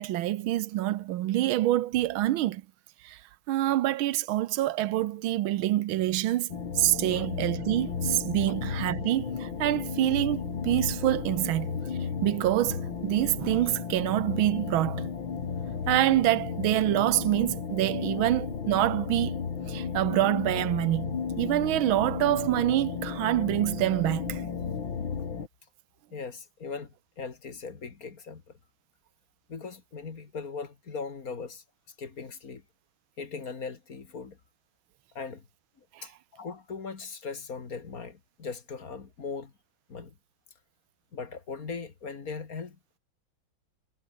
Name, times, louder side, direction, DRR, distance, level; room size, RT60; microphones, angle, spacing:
voice 1, 0.0-2.6 3.0-3.2 3.5-11.8 12.2-15.1 15.7-19.3 19.7-24.4 36.0-36.1, right 14 dB, 90° right, 1.6 m, -26 dB
sound 1, 6.5-25.5, left 6 dB, 75° left, 3.1 m, -34 dB
voice 2, 26.1-28.4 29.5-31.6 32.0-32.6 33.2-34.4 35.2-35.5 36.0-39.5 39.9-40.1 41.1-43.0, left 5 dB, 45° left, 2.4 m, -39 dB
omnidirectional pair, 2.2 m